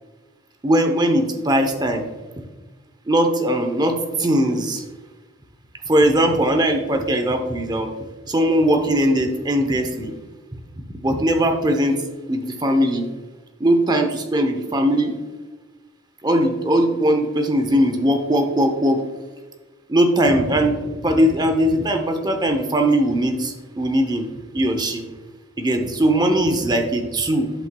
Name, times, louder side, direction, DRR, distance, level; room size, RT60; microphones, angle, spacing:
voice 1, 0.6-2.1 3.1-4.8 5.9-7.9 8.3-10.1 10.9-12.0 12.3-13.1 13.6-15.2 16.2-19.0 19.9-20.8 21.0-24.3 24.5-25.0 25.6-27.5, right 1 dB, 20° right, 5 dB, 0.7 m, -19 dB
11.0 x 5.5 x 2.2 m, 1.3 s
head